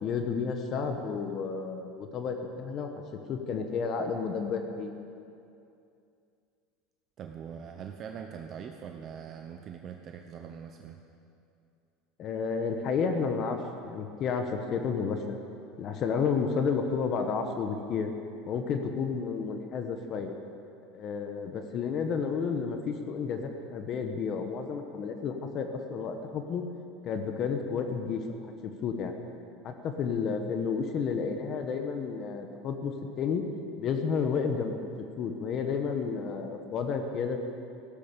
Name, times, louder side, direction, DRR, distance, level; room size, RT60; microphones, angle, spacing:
voice 1, 0.0-2.9 3.3-4.9 12.2-13.6 13.8-15.4 15.8-18.1 18.5-20.3 20.9-26.6 27.0-28.5 28.8-29.2 29.6-33.4 33.8-34.8 35.2-37.4, left 5 dB, 40° left, 5 dB, 1.2 m, -31 dB
voice 2, 7.2-11.0, right 7 dB, 35° right, 4 dB, 0.9 m, -42 dB
15.0 x 12.0 x 6.9 m, 2.5 s
supercardioid pair, 145°, 0 cm